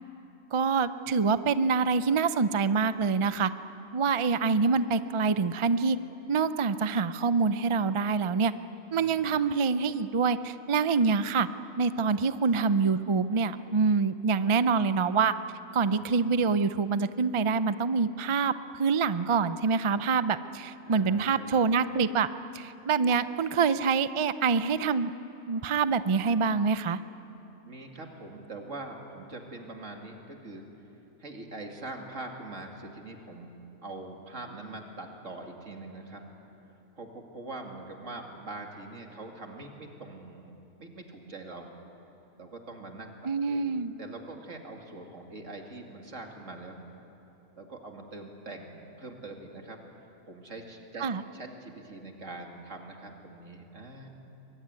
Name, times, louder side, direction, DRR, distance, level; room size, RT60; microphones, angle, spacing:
voice 1, 0.5-3.5 3.9-6.0 6.3-8.5 8.9-11.5 11.8-15.3 15.7-22.3 22.5-25.1 25.5-27.0 43.2-43.9 51.0-51.2, right 5 dB, 45° right, 13 dB, 0.4 m, -26 dB
voice 2, 8.9-9.3 15.9-16.4 20.9-21.7 27.7-30.6 31.2-33.5 33.8-36.2 36.9-41.7 42.4-46.8 47.6-49.8 50.3-51.0 51.3-54.1, right 2 dB, 65° right, 2 dB, 2.8 m, -43 dB
23.0 x 22.5 x 9.6 m, 3.0 s
omnidirectional pair, 1.4 m